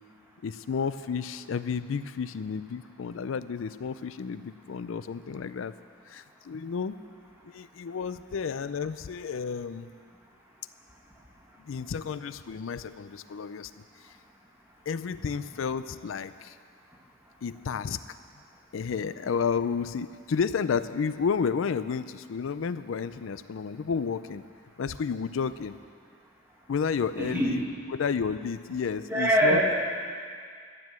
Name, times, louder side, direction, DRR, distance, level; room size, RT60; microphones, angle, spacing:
voice 1, 0.4-5.7 6.1-7.0 7.4-9.9 11.7-13.8 14.9-16.6 17.4-18.0 18.7-24.4 24.8-25.7 26.7-27.6 27.9-29.6, left 6 dB, 75° left, 14 dB, 0.4 m, -31 dB
voice 2, 27.2-27.5 29.1-29.7, equal, 10° right, -3 dB, 2.1 m, -23 dB
12.5 x 9.5 x 7.5 m, 2.1 s
head